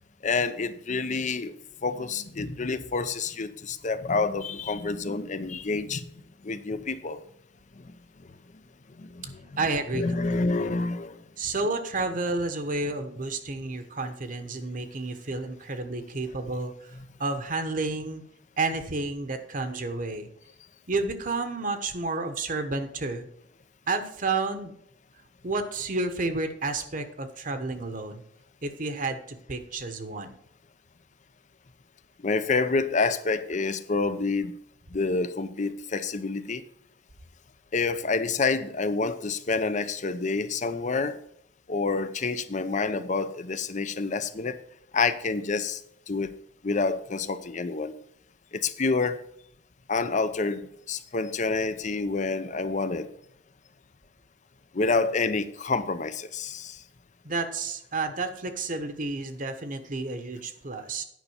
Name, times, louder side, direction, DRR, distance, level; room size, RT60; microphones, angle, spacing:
voice 1, 0.2-1.5 1.8-7.2 7.8-8.3 8.9-9.6 9.9-11.3 32.2-34.6 34.9-36.6 37.7-41.2 41.7-44.6 44.9-45.8 46.1-46.4 46.6-47.9 48.5-49.2 49.9-53.1 54.7-56.8, left 4 dB, 45° left, 12 dB, 0.6 m, -28 dB
voice 2, 9.6-10.7 11.4-18.2 18.6-20.3 20.9-23.3 23.9-24.7 25.4-28.2 28.6-30.4 57.2-61.0, right 3 dB, 50° right, 7 dB, 1.1 m, -31 dB
9.5 x 5.4 x 7.0 m, 0.70 s
head